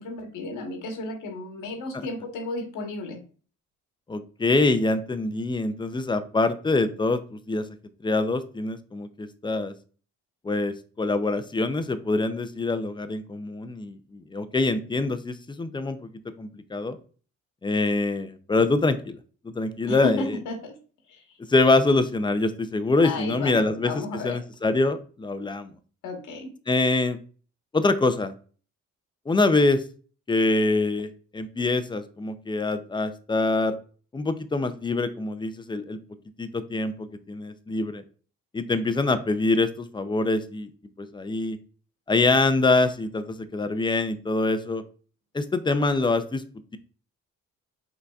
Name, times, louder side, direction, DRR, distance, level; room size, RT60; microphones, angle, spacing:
voice 1, 0.0-3.2 19.9-20.7 21.1-21.2 23.0-24.4 26.0-26.5, left 2 dB, 85° left, 4 dB, 1.3 m, -33 dB
voice 2, 4.1-7.7 8.0-9.7 10.4-16.1 16.4-17.0 17.6-19.2 19.5-20.2 21.5-23.9 24.2-25.7 26.7-27.2 27.7-28.3 29.3-29.8 30.3-33.8 34.1-36.0 36.4-38.0 38.5-40.7 41.0-41.6 42.1-44.8 45.3-46.4, left 3 dB, 15° left, 10 dB, 0.5 m, -24 dB
5.5 x 3.9 x 2.4 m, 0.40 s
cardioid pair, 90°, 30 cm